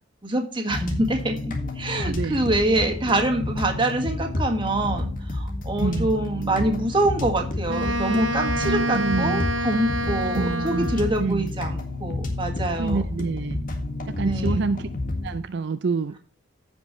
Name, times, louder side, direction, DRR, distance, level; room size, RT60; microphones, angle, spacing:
voice 1, 0.2-13.0 14.2-14.7, right 1 dB, 25° right, 3 dB, 1.7 m, -25 dB
sound 1, 0.7-15.4, left 2 dB, 45° left, 1.7 m, -30 dB
voice 2, 2.0-2.5 5.8-6.1 8.6-9.4 10.3-10.9 11.2-11.5 12.8-13.6 14.1-14.9 15.2-16.2, right 4 dB, 65° right, 10 dB, 0.4 m, -27 dB
Wind instrument woodwind instrument, 7.7-11.2, right 1 dB, 85° right, 0.8 m, -27 dB
15.0 x 5.3 x 3.1 m, 0.40 s
head